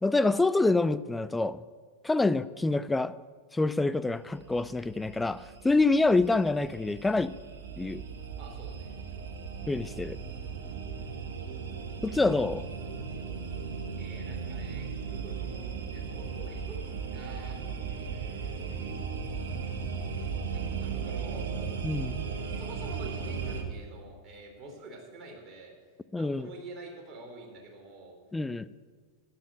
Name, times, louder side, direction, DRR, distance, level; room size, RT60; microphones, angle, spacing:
voice 1, 0.0-1.6 2.0-3.1 3.5-7.3 7.8-8.0 9.7-10.2 12.0-12.6 21.8-22.2 26.1-26.5 28.3-28.7, left 3 dB, 10° left, 0.5 m, -26 dB
sound 1, 4.3-23.6, right 5 dB, 60° right, 1.8 m, -37 dB
voice 2, 8.3-9.3 14.0-16.8 17.1-18.8 20.5-21.8 22.6-25.7 26.1-28.2, right 2 dB, 30° right, 4.3 m, -47 dB
12.5 x 10.0 x 8.6 m
figure-of-eight pair, 90°, 0 cm